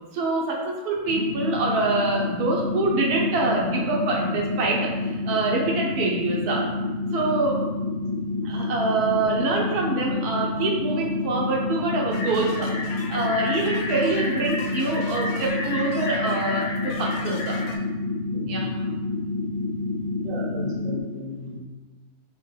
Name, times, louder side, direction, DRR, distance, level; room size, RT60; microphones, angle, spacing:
voice 1, 0.1-6.7 7.1-7.6 8.4-17.6 18.5-18.8, right 3 dB, 75° right, -2 dB, 1.2 m, -25 dB
sound 1, 1.0-21.0, left 3 dB, 35° left, 1.1 m, -28 dB
sound 2, 12.1-17.8, left 2 dB, 70° left, 0.9 m, -33 dB
voice 2, 18.3-18.7 20.2-21.6, left 1 dB, 45° right, -3 dB, 0.8 m, -35 dB
3.6 x 2.8 x 3.2 m, 1.2 s
omnidirectional pair, 1.7 m